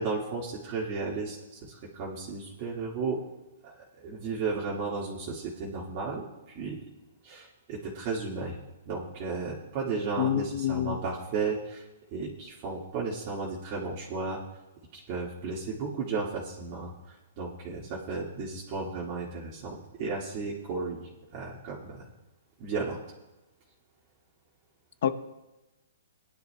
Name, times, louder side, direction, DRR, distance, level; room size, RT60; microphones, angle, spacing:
voice 1, 0.0-3.2 3.6-3.7 4.0-6.8 7.2-8.6 8.9-11.8 12.1-14.4 14.9-22.1 22.6-23.0, right 4 dB, 35° right, -5 dB, 1.9 m, -34 dB
voice 2, 10.2-11.0 25.0-25.1, left 10 dB, 60° left, 11 dB, 0.8 m, -27 dB
20.5 x 10.5 x 2.3 m, 1.1 s
hypercardioid pair, 160°, 0 cm